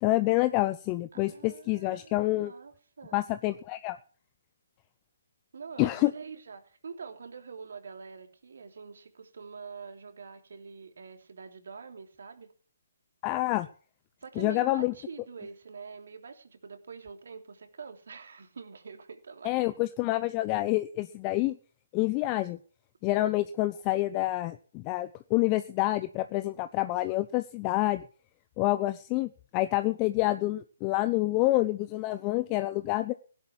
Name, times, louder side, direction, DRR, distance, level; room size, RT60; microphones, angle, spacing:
voice 1, 0.0-2.5 3.1-4.0 5.8-6.1 13.2-13.7 14.4-14.9 19.4-21.6 21.9-22.6 23.0-28.0 28.6-33.1, left 18 dB, 25° left, 13 dB, 0.7 m, -27 dB
voice 2, 1.1-3.2 5.5-12.5 14.2-19.5, right 5 dB, 60° right, 7 dB, 3.2 m, -45 dB
16.5 x 11.0 x 6.1 m, 0.43 s
figure-of-eight pair, 140°, 0 cm